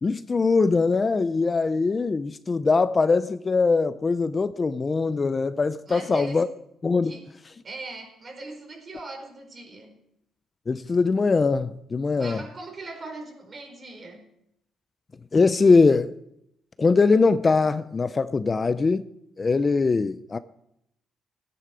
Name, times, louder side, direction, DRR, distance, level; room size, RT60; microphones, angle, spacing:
voice 1, 0.0-6.5 6.8-7.1 10.7-12.4 15.3-16.2 16.8-19.1 19.4-20.4, left 4 dB, 30° left, 0.6 m, -22 dB
voice 2, 5.9-6.4 7.0-7.3 7.6-10.0 12.2-14.2, right 3 dB, 40° right, 4.8 m, -39 dB
18.0 x 9.9 x 5.1 m
cardioid pair, 90°, 0 cm